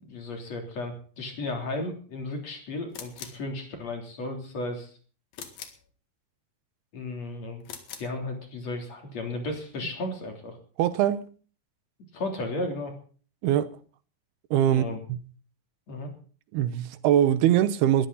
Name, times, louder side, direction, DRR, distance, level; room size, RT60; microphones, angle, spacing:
voice 1, 0.0-4.9 6.9-7.7 8.0-10.6 12.1-12.9 14.7-15.0 15.9-16.1, left 2 dB, 45° left, 4.4 m, -34 dB
sound 1, 2.9-3.5 5.3-5.9 7.6-8.2, left 8 dB, 65° left, 3.5 m, -42 dB
voice 2, 10.8-11.3 13.4-13.7 14.5-14.8 15.1-15.2 16.5-18.1, right 11 dB, 85° right, 3.0 m, -22 dB
21.0 x 15.0 x 4.1 m
omnidirectional pair, 4.5 m